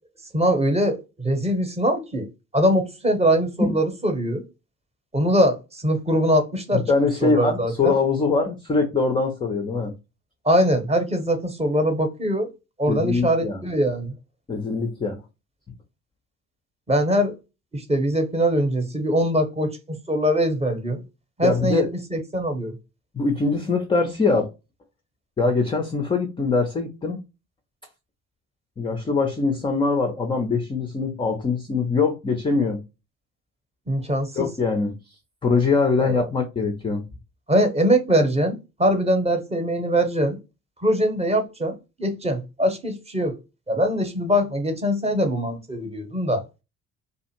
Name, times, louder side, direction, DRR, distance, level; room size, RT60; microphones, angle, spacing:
voice 1, 0.3-2.3 2.5-4.4 5.1-6.8 7.2-7.9 10.4-12.5 12.8-14.1 16.9-17.4 17.7-21.0 21.4-21.8 22.1-22.7 33.9-34.5 36.0-36.2 37.5-40.4 40.8-43.3 43.7-46.4, equal, 15° right, 0.7 m, -22 dB
voice 2, 6.7-10.0 12.9-13.6 14.5-15.2 21.4-21.9 23.1-24.5 25.4-27.2 28.8-32.8 34.4-34.9 35.4-37.1, left 4 dB, 10° left, 0.3 m, -23 dB
2.5 x 2.4 x 2.8 m
figure-of-eight pair, 50°, 46 cm